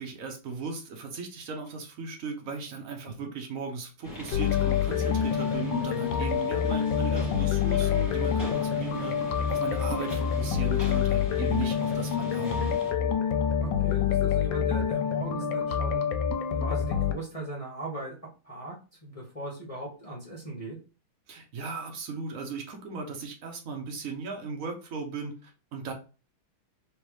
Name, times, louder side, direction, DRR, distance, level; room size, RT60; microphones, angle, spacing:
voice 1, 0.0-12.7 21.3-25.9, right 5 dB, 55° right, 2 dB, 1.0 m, -37 dB
sound 1, 4.0-12.9, left 1 dB, 10° left, 1.7 m, -42 dB
sound 2, 4.3-17.1, left 8 dB, 75° left, 1.2 m, -27 dB
voice 2, 12.1-12.8 13.6-16.0 16.6-18.2 18.4-18.8 19.0-20.8, right 1 dB, 30° left, -5 dB, 0.7 m, -39 dB
3.4 x 3.2 x 3.1 m, 0.34 s
omnidirectional pair, 2.2 m